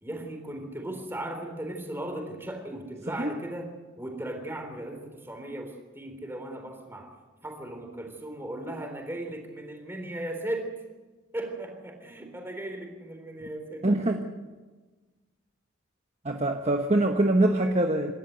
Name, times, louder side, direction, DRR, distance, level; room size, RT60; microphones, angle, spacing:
voice 1, 0.0-7.1 7.4-10.7 11.3-13.9, right 1 dB, 10° right, 3 dB, 3.7 m, -37 dB
voice 2, 13.8-14.2 16.2-18.1, right 1 dB, 30° right, 4 dB, 1.1 m, -23 dB
27.0 x 13.0 x 8.1 m, 1.3 s
head